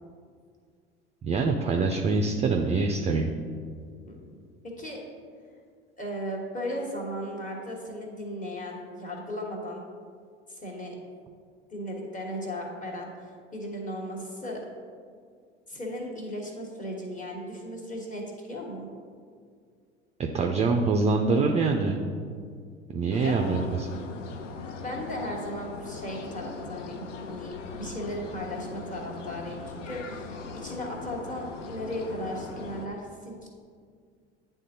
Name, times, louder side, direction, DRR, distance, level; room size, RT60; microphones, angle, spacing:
voice 1, 1.2-3.3 20.2-22.0 22.9-23.9, right 4 dB, 20° right, 3 dB, 0.3 m, -25 dB
voice 2, 6.0-9.8 10.5-10.9 11.7-14.7 15.7-18.9 23.2-23.4 24.8-33.5, equal, 20° left, -1 dB, 1.3 m, -36 dB
sound 1, 23.1-32.9, left 4 dB, 85° left, 0.5 m, -40 dB
9.8 x 3.6 x 2.7 m, 2.1 s
figure-of-eight pair, 70°, 36 cm